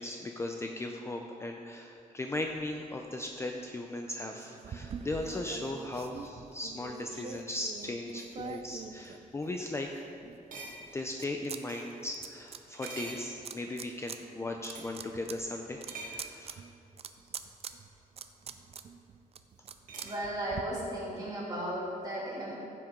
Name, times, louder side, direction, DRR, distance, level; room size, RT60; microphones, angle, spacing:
voice 1, 0.0-10.0 10.9-15.8 16.1-16.7, left 2 dB, 20° left, 3 dB, 0.4 m, -37 dB
sound 1, 2.5-6.3 7.3-7.6 8.0-8.4 9.0-9.1 9.4-9.5 9.9-10.1 10.5-12.1 12.7-13.9 14.7-15.0 15.9-16.3 18.0-18.1 19.9-20.2, right 3 dB, 65° right, 1.6 m, -48 dB
sound 2, 4.6-9.7 10.2-11.6 11.9-12.9 13.4-14.2 14.5-20.6, right 6 dB, 45° right, 0.4 m, -44 dB
voice 2, 20.0-22.6, right 1 dB, 25° right, -6 dB, 2.7 m, -35 dB
15.0 x 7.6 x 3.7 m, 2.7 s
wide cardioid pair, 175°, 15 cm